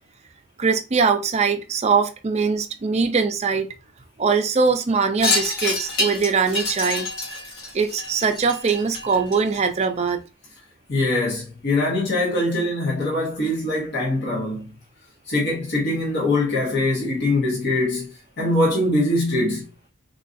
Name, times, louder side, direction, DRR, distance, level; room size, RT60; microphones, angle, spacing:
voice 1, 0.6-3.7 4.2-7.1 7.7-10.2, right 5 dB, 30° right, 0.4 m, -21 dB
Wind chime, 5.2-9.8, left 2 dB, 75° left, 1.3 m, -27 dB
voice 2, 10.9-14.7 15.3-18.1 18.4-19.7, left 2 dB, 55° left, 0.8 m, -22 dB
3.7 x 2.4 x 2.5 m
head